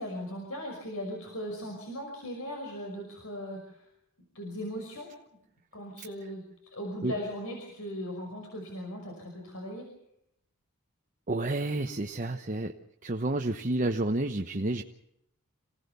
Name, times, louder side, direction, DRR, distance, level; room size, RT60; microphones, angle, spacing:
voice 1, 0.0-3.9 4.3-5.1 5.7-6.4 6.7-9.8, equal, 70° left, 2 dB, 5.6 m, -38 dB
voice 2, 11.3-12.7 13.0-14.8, right 2 dB, 35° right, 3 dB, 1.1 m, -30 dB
27.5 x 17.5 x 6.8 m, 0.78 s
head